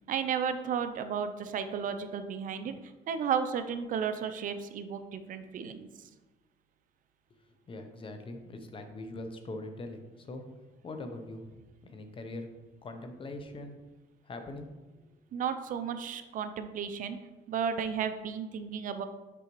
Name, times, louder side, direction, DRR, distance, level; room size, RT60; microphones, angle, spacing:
voice 1, 0.1-2.7 3.1-5.9 15.3-17.2 17.5-19.1, right 7 dB, 55° right, 10 dB, 0.5 m, -33 dB
voice 2, 7.3-10.4 10.8-12.5 12.8-13.8 14.2-14.7, left 2 dB, 30° left, 6 dB, 0.7 m, -42 dB
6.8 x 4.8 x 3.1 m, 1.2 s
cardioid pair, 110°, 17 cm